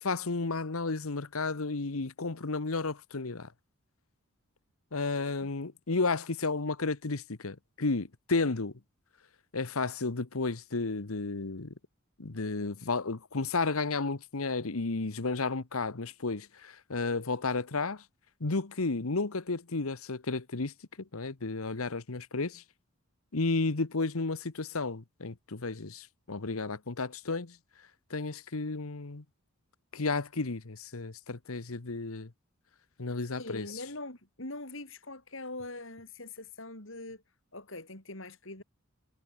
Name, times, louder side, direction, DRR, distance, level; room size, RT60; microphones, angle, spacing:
voice 1, 0.0-3.5 4.9-8.7 9.5-11.7 12.2-18.0 18.4-20.7 21.1-22.6 23.3-27.6 28.1-29.2 29.9-32.3 33.0-33.7, left 3 dB, 80° left, 1.2 m, -32 dB
voice 2, 33.4-37.2 37.5-38.6, left 2 dB, 60° left, 5.4 m, -42 dB
head